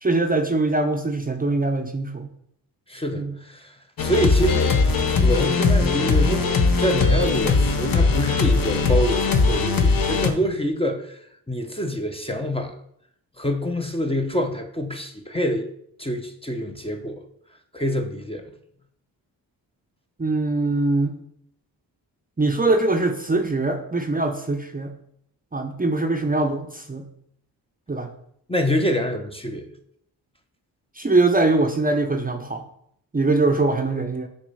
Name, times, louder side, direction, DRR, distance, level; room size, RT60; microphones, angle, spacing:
voice 1, 0.0-2.3 3.1-3.3 20.2-21.2 22.4-24.9 25.5-27.0 27.9-28.1 31.0-32.6 33.1-34.3, right 2 dB, 20° right, 4 dB, 0.7 m, -22 dB
voice 2, 2.9-4.8 5.2-6.5 6.8-12.7 13.4-15.7 16.0-17.2 17.7-18.5 28.5-29.7, equal, 15° left, 4 dB, 0.8 m, -26 dB
sound 1, 4.0-10.3, left 4 dB, 50° left, 0.9 m, -20 dB
6.2 x 3.0 x 5.5 m, 0.70 s
supercardioid pair, 45°, 44 cm